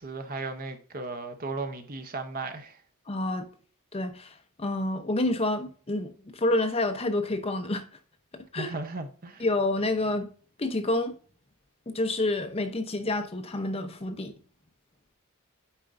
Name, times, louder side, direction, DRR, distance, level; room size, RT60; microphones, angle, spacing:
voice 1, 0.0-2.8 8.5-9.4, right 3 dB, 40° right, 0.8 m, -36 dB
voice 2, 3.1-3.5 3.9-7.8 8.3-8.7 9.4-10.3 10.6-11.1 11.9-14.3, left 2 dB, 25° left, 0.7 m, -28 dB
8.9 x 4.4 x 2.5 m
head